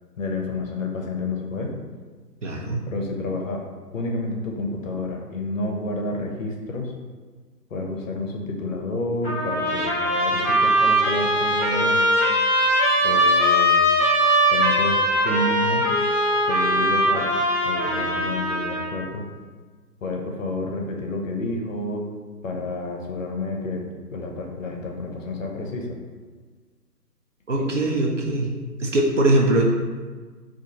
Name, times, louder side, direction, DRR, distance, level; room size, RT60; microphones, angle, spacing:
voice 1, 0.2-1.7 2.9-3.6 3.9-6.9 7.7-12.0 13.0-13.8 14.5-15.9 16.5-17.3 17.6-19.3 20.0-22.0 22.4-23.8 24.1-25.9 27.6-27.7, left 2 dB, 55° left, 1 dB, 0.6 m, -29 dB
voice 2, 2.4-2.8 27.5-28.5 28.8-29.7, right 1 dB, 50° right, -1 dB, 0.5 m, -21 dB
Trumpet, 9.2-18.9, equal, 5° left, 1.0 m, -21 dB
3.8 x 2.4 x 2.7 m, 1.5 s
hypercardioid pair, 160°, 48 cm